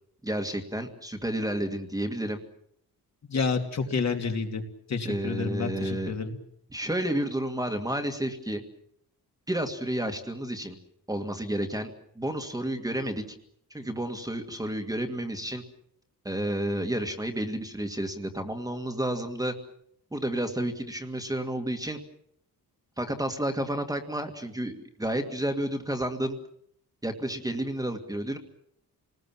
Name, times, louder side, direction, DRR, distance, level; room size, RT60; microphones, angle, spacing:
voice 1, 0.2-2.4 5.0-6.1 6.7-8.6 9.5-10.8 11.1-13.2 13.7-15.6 16.3-19.5 20.1-22.0 23.0-24.7 25.0-26.4 27.0-28.4, right 1 dB, 10° right, 5 dB, 2.0 m, -31 dB
voice 2, 3.3-4.6 4.9-6.3, left 4 dB, 45° left, 4 dB, 2.9 m, -29 dB
29.0 x 20.0 x 7.4 m, 0.71 s
wide cardioid pair, 165°, 37 cm